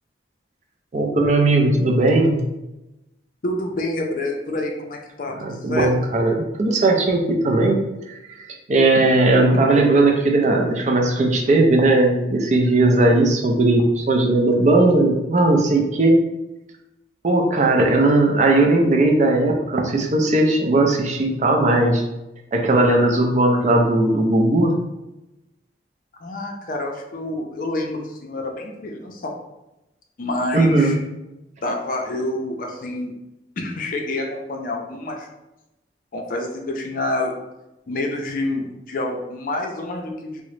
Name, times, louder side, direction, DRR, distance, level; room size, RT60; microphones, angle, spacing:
voice 1, 0.9-2.4 5.4-7.8 8.1-8.2 8.7-16.2 17.2-22.0 22.5-24.8 30.5-31.0, right 2 dB, 40° right, 2 dB, 0.4 m, -17 dB
voice 2, 3.4-5.9 26.2-29.3 30.2-31.0 31.6-33.1 33.6-35.3 36.1-37.3 37.9-40.4, left 2 dB, 45° left, 1 dB, 0.5 m, -27 dB
3.7 x 2.0 x 3.1 m, 0.96 s
head